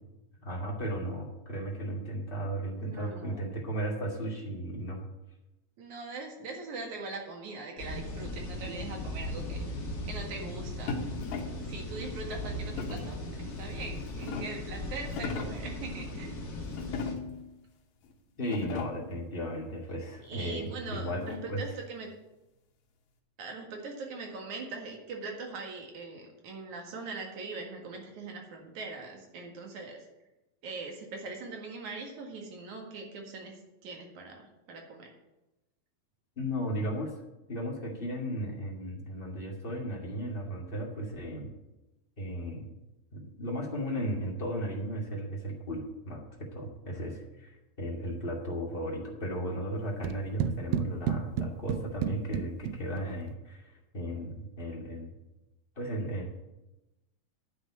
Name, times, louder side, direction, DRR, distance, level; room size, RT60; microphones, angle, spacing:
voice 1, 0.4-5.0 18.4-21.2 21.5-21.6 36.3-37.1 37.5-41.5 42.2-42.7 43.1-46.2 46.5-55.1 55.7-56.4, equal, 20° left, -2 dB, 1.8 m, -35 dB
voice 2, 2.8-3.4 5.8-11.0 11.6-16.4 20.2-22.1 23.4-30.0 30.6-33.6 33.8-35.1, right 3 dB, 60° right, 1 dB, 3.1 m, -41 dB
sound 1, 7.8-17.1, left 1 dB, 35° left, 2.3 m, -38 dB
sound 2, 10.9-11.7 12.8-13.2 13.8-14.7 15.1-15.7 16.8-17.5 18.0-18.1 18.4-19.1 20.5-21.7, left 4 dB, 85° left, 3.1 m, -38 dB
sound 3, 50.0-53.3, right 8 dB, 80° right, 1.6 m, -33 dB
10.5 x 6.4 x 8.7 m, 0.99 s
omnidirectional pair, 3.9 m